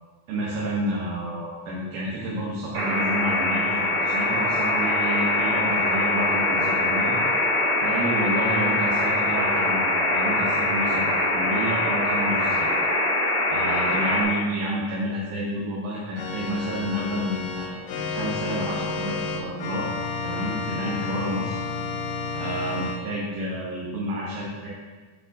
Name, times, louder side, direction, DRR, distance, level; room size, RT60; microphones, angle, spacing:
voice 1, 0.3-7.2 7.8-12.7 13.5-19.9 20.2-21.6 22.3-24.7, right 1 dB, 75° right, -6 dB, 2.4 m, -30 dB
sound 1, 2.7-14.2, left 2 dB, 50° right, 2.0 m, -23 dB
Organ, 16.2-23.0, left 4 dB, 85° left, 2.1 m, -31 dB
6.5 x 6.2 x 2.7 m, 1.4 s
omnidirectional pair, 3.8 m